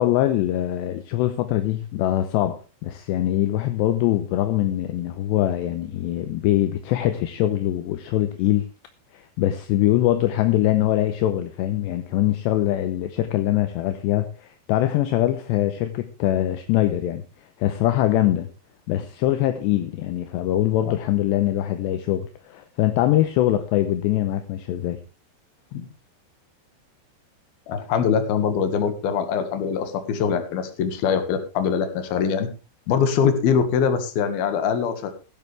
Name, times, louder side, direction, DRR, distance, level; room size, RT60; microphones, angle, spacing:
voice 1, 0.0-8.6 9.1-17.2 17.6-18.5 18.9-25.0, left 13 dB, 80° left, 9 dB, 3.0 m, -23 dB
voice 2, 27.7-32.5 32.9-35.1, left 7 dB, 60° left, 9 dB, 3.3 m, -23 dB
15.5 x 13.0 x 3.4 m, 0.31 s
omnidirectional pair, 5.2 m